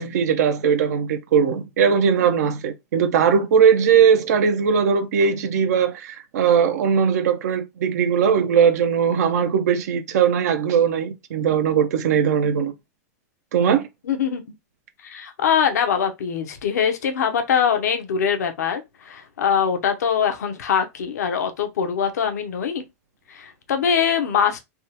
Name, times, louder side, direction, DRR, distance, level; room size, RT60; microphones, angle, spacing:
voice 1, 0.0-12.7 13.5-13.9, right 7 dB, 75° right, 0.6 m, -19 dB
voice 2, 14.0-14.4 15.0-22.8 23.3-24.6, left 7 dB, 90° left, 0.7 m, -23 dB
3.5 x 2.2 x 2.9 m
supercardioid pair, 130°, 9 cm